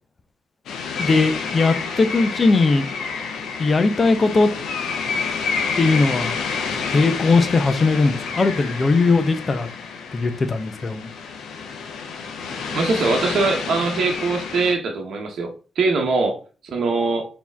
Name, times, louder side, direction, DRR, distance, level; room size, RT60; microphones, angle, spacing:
sound 1, 0.7-14.7, left 5 dB, 80° left, 0.6 m, -29 dB
voice 1, 1.0-2.9 3.6-4.5 5.8-6.4 6.9-9.7 10.1-11.1, left 3 dB, 40° left, 0.7 m, -19 dB
voice 2, 12.7-15.5 15.8-16.4 16.6-17.3, right 3 dB, 65° right, 0.9 m, -22 dB
4.1 x 3.0 x 3.4 m
supercardioid pair, 60°, 0 cm